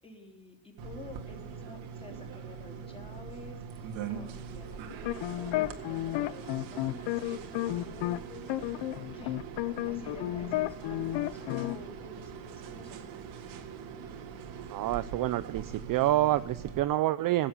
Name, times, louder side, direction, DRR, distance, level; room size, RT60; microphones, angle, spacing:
voice 1, 0.0-13.1, left 2 dB, 10° left, 2 dB, 3.2 m, -50 dB
sound 1, 0.8-16.8, right 7 dB, 65° right, 2.0 m, -42 dB
sound 2, 4.9-8.2 8.5-11.8, left 16 dB, 60° left, 0.7 m, -32 dB
voice 2, 14.7-17.5, right 15 dB, 45° right, 14 dB, 0.4 m, -27 dB
16.5 x 7.5 x 6.8 m, 0.82 s
cardioid pair, 130°, 50 cm